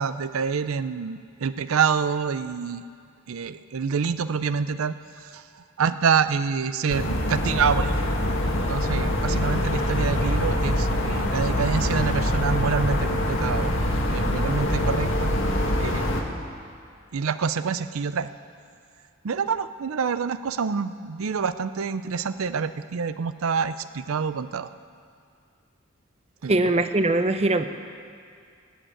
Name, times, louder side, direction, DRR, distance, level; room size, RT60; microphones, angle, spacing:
voice 1, 0.0-2.8 3.3-5.4 5.8-8.0 8.5-13.7 14.1-15.3 15.8-16.1 17.1-18.3 19.2-24.7 26.4-26.6, right 6 dB, 85° right, 13 dB, 0.5 m, -27 dB
sound 1, 6.9-16.2, left 1 dB, 70° left, 1.8 m, -24 dB
voice 2, 26.5-27.7, right 2 dB, 30° right, 9 dB, 0.6 m, -21 dB
19.0 x 7.9 x 8.9 m, 2.3 s
head